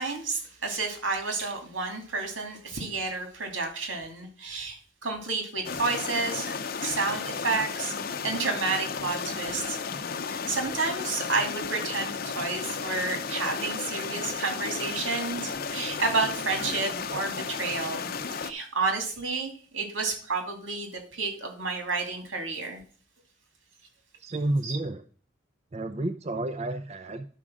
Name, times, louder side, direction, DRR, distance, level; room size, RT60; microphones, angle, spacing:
voice 1, 0.0-6.5 6.8-7.9 8.2-9.8 10.3-18.1 18.4-22.8 24.6-24.7, right 3 dB, 85° right, 4 dB, 2.6 m, -30 dB
sound 1, 5.6-18.5, left 5 dB, 50° left, 0.7 m, -34 dB
voice 2, 24.2-25.0 25.7-27.3, right 1 dB, 35° right, 9 dB, 0.5 m, -30 dB
11.0 x 4.9 x 6.3 m, 0.42 s
head